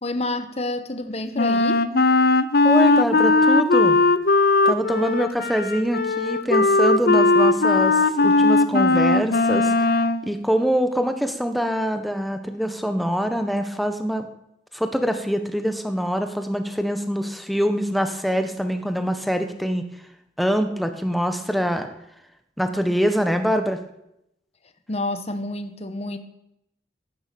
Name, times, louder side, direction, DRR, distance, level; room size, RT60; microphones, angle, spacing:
voice 1, 0.0-1.9 24.9-26.2, left 2 dB, 35° left, 9 dB, 1.3 m, -29 dB
Wind instrument woodwind instrument, 1.3-10.2, left 3 dB, 55° left, 0.7 m, -18 dB
voice 2, 2.6-4.0 4.6-9.9 10.2-14.3 14.7-20.0 20.4-21.9 22.6-23.8, equal, ahead, 7 dB, 1.3 m, -24 dB
11.5 x 11.5 x 8.6 m, 0.81 s
head